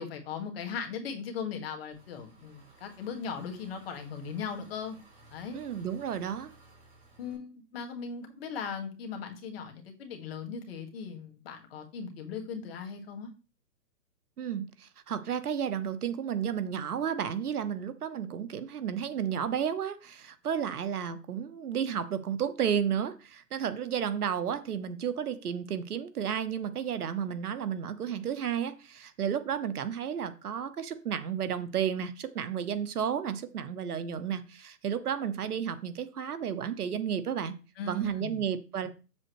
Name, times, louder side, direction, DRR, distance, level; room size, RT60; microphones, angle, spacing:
voice 1, 0.0-5.0 5.3-5.6 7.2-13.3 37.8-38.4, left 5 dB, 35° left, 3 dB, 1.8 m, -38 dB
Engine, 1.9-7.3, right 2 dB, 10° right, 3.5 m, -58 dB
voice 2, 5.5-6.5 14.4-37.6 37.9-38.9, right 8 dB, 65° right, 11 dB, 1.1 m, -32 dB
7.6 x 7.6 x 3.1 m, 0.33 s
hypercardioid pair, 155°, 49 cm